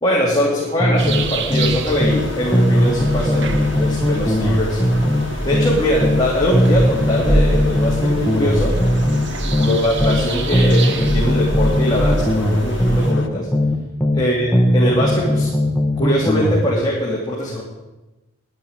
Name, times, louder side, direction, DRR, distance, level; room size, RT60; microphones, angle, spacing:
voice 1, 0.0-4.8 5.4-8.8 9.4-13.5 14.1-15.5 16.0-17.6, equal, 20° left, -4 dB, 2.7 m, -21 dB
sound 1, 0.8-2.3 2.5-6.2 6.5-10.2 10.5-14.2 14.5-16.6, left 1 dB, 5° left, 1.4 m, -18 dB
sound 2, 1.0-13.1, right 1 dB, 60° right, 1.3 m, -25 dB
sound 3, 2.1-13.3, left 3 dB, 70° left, 1.1 m, -34 dB
11.0 x 10.5 x 8.8 m, 1.1 s
head